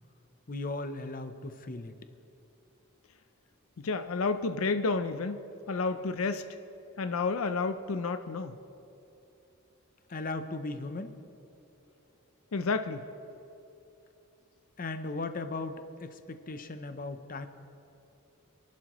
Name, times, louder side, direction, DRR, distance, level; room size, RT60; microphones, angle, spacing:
voice 1, 0.5-1.9 10.1-11.1 14.8-17.5, left 2 dB, 40° left, 9 dB, 0.7 m, -37 dB
voice 2, 3.8-5.4 5.7-6.5 7.0-8.6 12.5-13.1, left 4 dB, 75° left, 9 dB, 0.5 m, -30 dB
28.0 x 11.5 x 3.1 m, 2.8 s
head